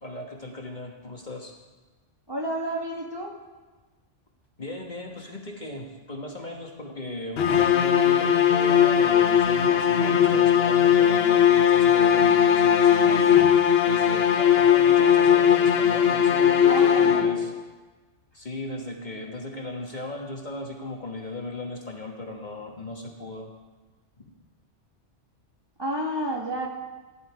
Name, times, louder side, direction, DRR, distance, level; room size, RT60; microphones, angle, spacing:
voice 1, 0.0-1.5 4.6-13.3 13.8-17.5 18.3-23.5, left 1 dB, 40° left, 1 dB, 1.5 m, -36 dB
voice 2, 2.3-3.3 16.7-17.4 25.8-26.7, right 1 dB, 20° right, -1 dB, 1.5 m, -30 dB
sound 1, 7.4-17.6, left 9 dB, 60° left, 1.0 m, -19 dB
15.5 x 10.5 x 4.7 m, 1.3 s
omnidirectional pair, 1.2 m